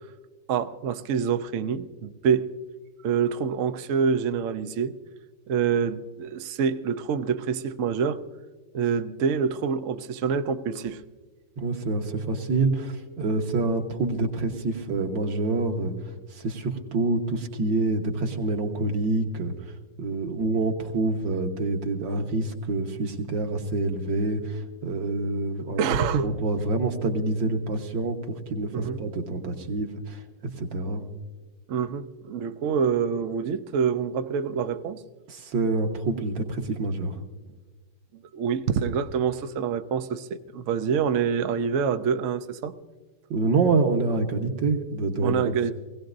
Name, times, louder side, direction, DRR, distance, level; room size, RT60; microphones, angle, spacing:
voice 1, 0.5-2.5 3.0-4.9 5.5-8.2 8.7-11.0 25.8-26.3 28.7-29.0 31.7-35.0 38.3-42.7 45.2-45.7, right 6 dB, 85° right, 8 dB, 0.7 m, -26 dB
voice 2, 11.6-15.9 16.3-19.5 20.0-25.8 26.1-30.2 30.6-31.0 35.3-37.2 43.3-45.5, right 3 dB, 65° right, 4 dB, 1.9 m, -27 dB
20.5 x 17.0 x 2.6 m, 1.3 s
omnidirectional pair, 2.2 m